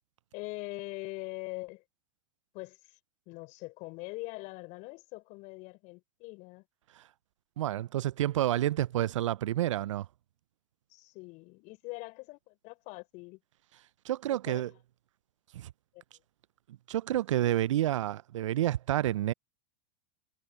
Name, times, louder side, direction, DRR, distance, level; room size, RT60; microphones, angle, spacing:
voice 1, 0.3-1.8 2.5-3.0 3.3-6.6 10.9-13.4 14.3-14.8 15.9-16.0, left 24 dB, 50° left, 4.0 m, -43 dB
voice 2, 7.6-10.1 14.0-14.7 15.5-15.7 16.9-19.3, right 13 dB, 75° right, 0.5 m, -29 dB
hypercardioid pair, 95°, 16 cm